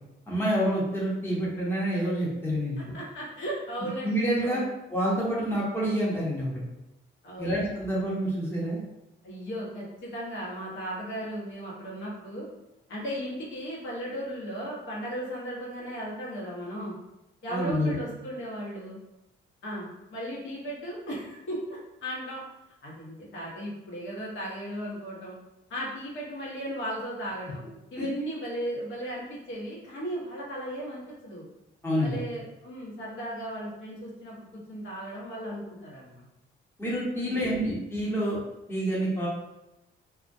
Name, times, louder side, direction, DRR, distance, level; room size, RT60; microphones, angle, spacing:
voice 1, 0.3-2.8 4.0-4.6 4.9-6.6 7.4-8.8 17.5-18.0 28.0-28.1 31.8-32.2 36.8-38.4 38.7-39.3, equal, 10° left, -6 dB, 0.8 m, -27 dB
voice 2, 2.9-4.7 7.2-7.6 9.2-12.5 12.9-16.9 17.4-19.0 19.6-22.4 22.8-25.3 25.7-27.6 27.9-31.5 32.0-34.4 34.7-36.2 37.2-37.6, equal, 70° left, -5 dB, 1.0 m, -36 dB
2.3 x 2.1 x 2.6 m, 0.92 s
cardioid pair, 90°, 20 cm